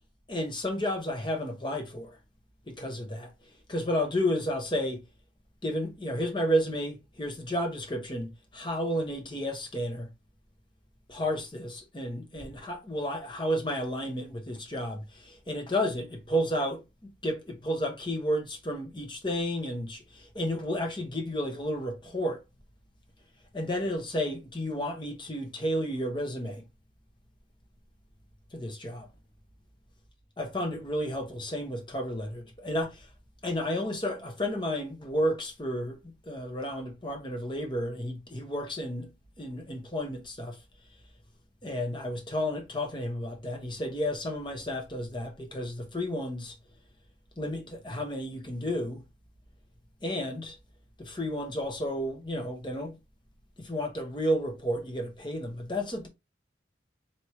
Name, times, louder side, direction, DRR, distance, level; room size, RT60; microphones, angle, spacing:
voice 1, 0.3-2.2 2.7-3.3 3.7-5.0 5.6-10.1 11.1-22.4 23.5-26.6 28.5-29.1 30.4-33.1 33.4-39.1 39.4-40.6 41.6-46.5 47.4-49.0 50.0-50.6 51.0-53.0 53.6-56.1, equal, 25° left, 1.0 m, -32 dB
4.3 x 3.2 x 3.1 m
head